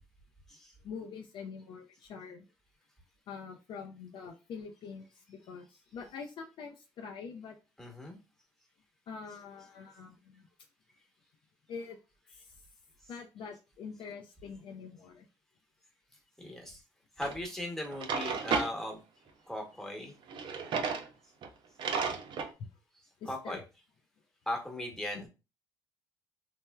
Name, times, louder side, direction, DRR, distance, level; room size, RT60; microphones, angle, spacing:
voice 1, 0.8-2.4 3.3-7.5 9.1-10.4 11.7-12.0 12.3-12.5 13.1-15.3 23.2-23.6 25.1-25.2, left 5 dB, 55° left, 0.4 m, -45 dB
voice 2, 7.8-8.2 16.4-16.8 17.2-19.0 19.5-20.1 23.3-23.6 24.5-25.3, left 1 dB, 5° left, 1.0 m, -38 dB
Drawer open or close, 17.2-17.3 17.8-18.7 20.3-21.1 21.4-21.5 21.8-22.5, right 5 dB, 55° right, 0.5 m, -33 dB
3.1 x 2.0 x 2.2 m
supercardioid pair, 65°, 10 cm